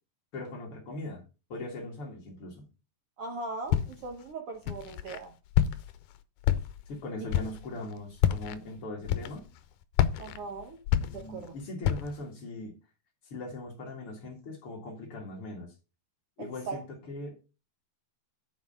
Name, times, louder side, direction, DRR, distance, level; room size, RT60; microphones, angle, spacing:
voice 1, 0.3-1.2 1.5-2.7 6.9-9.5 11.0-12.8 13.2-15.7 16.4-17.4, left 2 dB, 50° left, 0 dB, 2.6 m, -40 dB
voice 2, 3.2-5.4 10.2-10.8 11.1-11.6 16.4-16.8, right 3 dB, 60° right, 4 dB, 1.7 m, -39 dB
Walk footsteps, 3.7-4.2 4.7-5.2 5.5-6.0 6.4-6.9 7.3-7.7 8.2-8.6 9.1-9.6 9.9-11.5 11.8-12.2, left 10 dB, 85° left, 2.1 m, -28 dB
8.3 x 4.8 x 5.5 m, 0.31 s
omnidirectional pair, 3.6 m